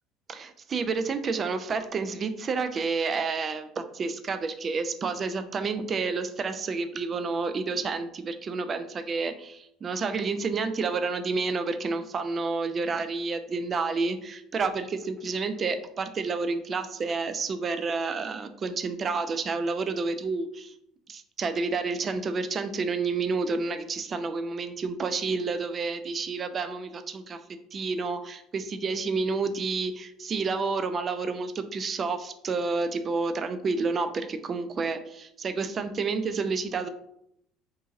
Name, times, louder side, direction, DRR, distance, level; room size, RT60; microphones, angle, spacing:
voice 1, 0.3-20.7 21.1-27.4 27.7-36.9, right 4 dB, 35° right, 9 dB, 0.3 m, -30 dB
2.7 x 2.6 x 2.5 m, 0.74 s
figure-of-eight pair, 60°, 0 cm